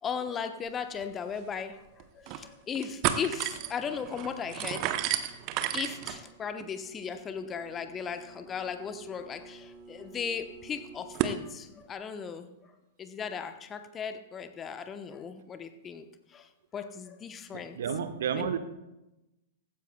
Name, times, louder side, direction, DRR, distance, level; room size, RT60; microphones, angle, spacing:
voice 1, 0.0-5.0 5.7-12.5 13.0-17.8 18.4-18.5, left 6 dB, 20° left, 8 dB, 1.0 m, -37 dB
sound 1, 1.0-1.1 1.4-1.5 2.0-2.5 2.8-11.4, right 11 dB, 40° right, 0.9 m, -35 dB
voice 2, 17.5-18.6, right 7 dB, 55° right, 10 dB, 1.1 m, -31 dB
17.5 x 15.5 x 2.3 m, 0.95 s
figure-of-eight pair, 100°, 0 cm